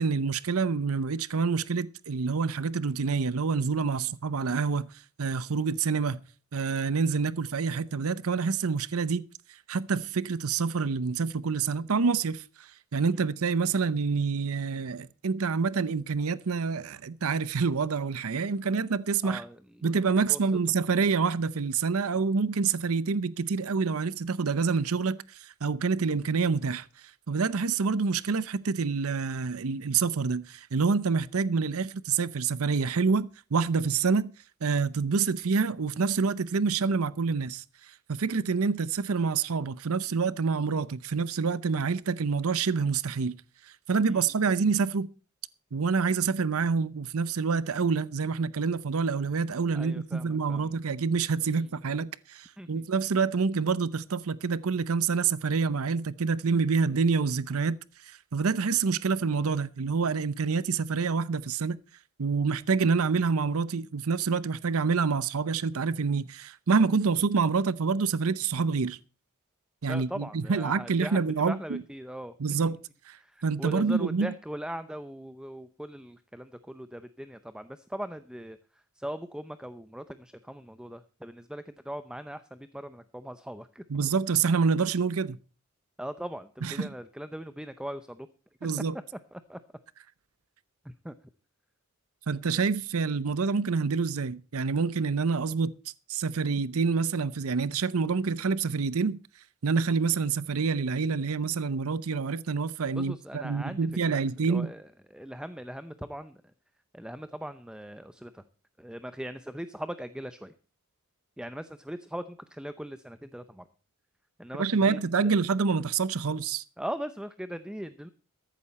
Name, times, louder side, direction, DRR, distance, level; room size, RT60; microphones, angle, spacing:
voice 1, 0.0-4.9 5.2-6.2 6.5-9.2 9.5-19.4 19.8-26.9 27.3-34.3 34.6-43.3 43.9-45.1 45.7-57.8 58.0-61.8 62.2-69.0 69.8-71.8 72.4-72.8 73.1-73.2 73.4-74.3 83.9-85.4 86.6-86.9 88.6-88.9 92.3-95.7 96.1-99.2 99.6-104.7 114.6-116.6, right 5 dB, 70° right, 0.6 m, -27 dB
voice 2, 19.2-19.9 20.3-20.4 44.1-44.2 49.7-50.7 51.4-51.7 52.6-52.8 69.9-72.8 73.2-83.8 86.0-88.3 88.6-88.7 89.3-89.6 90.8-91.1 103.0-106.4 106.9-108.4 108.8-110.5 111.4-113.6 114.4-115.3 116.8-118.1, equal, 5° right, 0.6 m, -40 dB
14.5 x 11.5 x 4.2 m
head